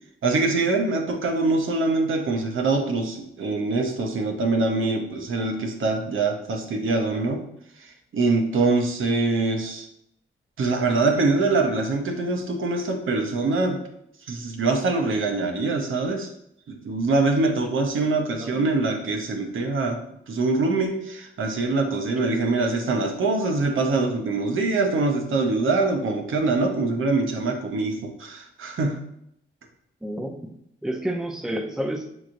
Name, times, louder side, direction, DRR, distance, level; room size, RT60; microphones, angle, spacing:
voice 1, 0.2-7.4 7.8-9.9 10.6-13.8 14.3-16.3 16.7-20.0 20.3-29.0, right 3 dB, 75° right, 3 dB, 0.7 m, -24 dB
voice 2, 30.0-30.5 30.8-32.1, right 1 dB, 5° right, 3 dB, 0.6 m, -30 dB
6.1 x 3.0 x 2.6 m, 0.74 s
cardioid pair, 85°, 21 cm